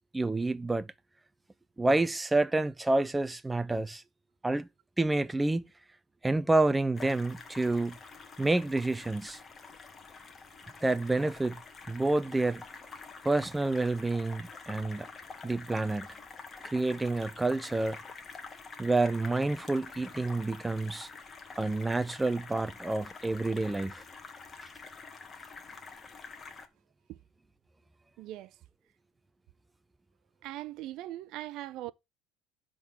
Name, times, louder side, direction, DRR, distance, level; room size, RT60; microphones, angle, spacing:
voice 1, 0.1-0.9 1.8-4.0 4.4-4.7 5.0-5.6 6.2-8.0 8.4-9.4 10.8-11.6 11.9-12.6 13.2-15.1 15.4-16.1 16.6-18.0 18.8-21.1 21.6-24.0, right 2 dB, 10° right, 0.4 m, -28 dB
sound 1, 6.9-26.7, left 4 dB, 20° left, 1.6 m, -47 dB
voice 2, 28.2-28.5 30.4-31.9, right 15 dB, 55° right, 0.6 m, -40 dB
10.5 x 3.7 x 7.1 m
cardioid pair, 130°, 0 cm